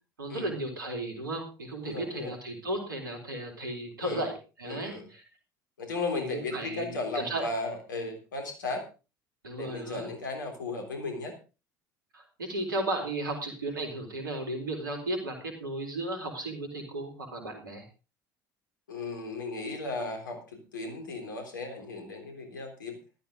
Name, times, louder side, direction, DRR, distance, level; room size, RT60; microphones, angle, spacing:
voice 1, 0.2-5.2 6.1-7.4 9.4-10.1 12.1-17.9, right 1 dB, 75° right, 3 dB, 4.0 m, -35 dB
voice 2, 1.8-2.3 4.0-4.2 4.7-5.1 5.8-8.8 9.6-11.3 18.9-23.0, left 3 dB, 70° left, 4 dB, 3.7 m, -35 dB
14.5 x 13.0 x 3.9 m, 0.33 s
figure-of-eight pair, 60°, 11 cm